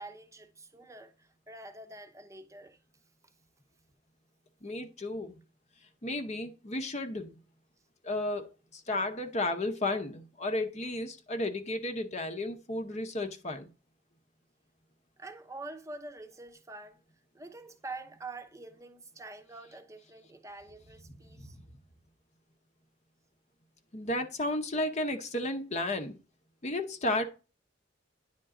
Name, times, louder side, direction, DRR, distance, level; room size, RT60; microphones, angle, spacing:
voice 1, 0.0-2.8 15.2-17.0 17.3-21.6, right 2 dB, 15° right, 0.8 m, -46 dB
voice 2, 4.6-5.4 6.0-7.4 8.0-13.7 21.4-21.6 23.9-26.2 26.6-27.3, left 1 dB, 40° left, 0.9 m, -33 dB
10.0 x 3.7 x 3.7 m
head